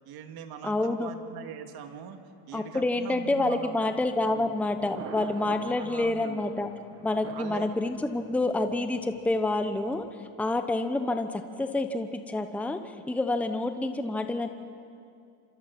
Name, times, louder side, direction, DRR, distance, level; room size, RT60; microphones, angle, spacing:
voice 1, 0.1-2.2 2.5-3.9 4.2-4.6 5.8-6.4 7.3-7.7, right 8 dB, 50° right, 6 dB, 2.2 m, -42 dB
voice 2, 0.6-1.1 2.5-6.7 7.0-14.5, left 2 dB, 5° left, 7 dB, 0.9 m, -28 dB
Thunder, 4.1-10.1, right 6 dB, 30° right, 1.4 m, -46 dB
27.0 x 24.5 x 6.0 m, 2.4 s
supercardioid pair, 125°, 48 cm